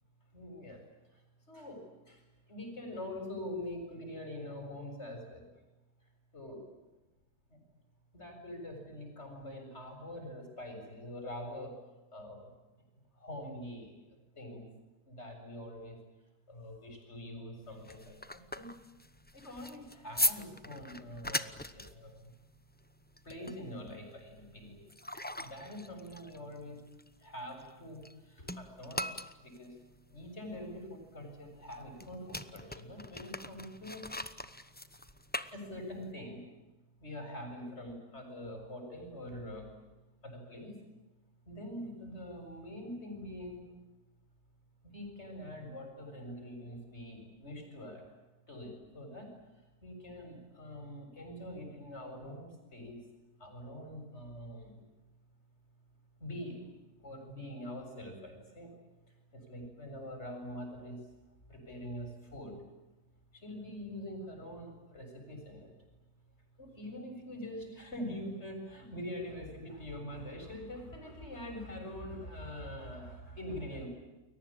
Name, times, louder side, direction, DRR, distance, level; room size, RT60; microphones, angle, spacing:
voice 1, 0.3-0.8 1.1-1.2 1.5-5.5 6.3-6.6 7.5-7.6 8.1-11.8 12.1-12.5 13.2-14.0 14.4-14.7 15.1-16.0 16.5-18.7 19.3-22.3 23.2-24.8 25.4-26.8 27.2-29.7 30.1-34.1 35.5-36.4 37.0-39.7 40.2-40.8 41.5-43.7 44.8-48.1 48.5-49.4 49.8-53.0 53.4-54.8 56.2-56.7 57.0-58.7 59.3-61.0 61.5-62.6 63.3-65.7 66.6-73.9, left 1 dB, 40° left, 3 dB, 7.7 m, -44 dB
sound 1, 17.6-28.1 28.4-36.1, left 1 dB, 10° left, 0.6 m, -40 dB
29.5 x 22.5 x 8.8 m, 1.1 s
omnidirectional pair, 1.8 m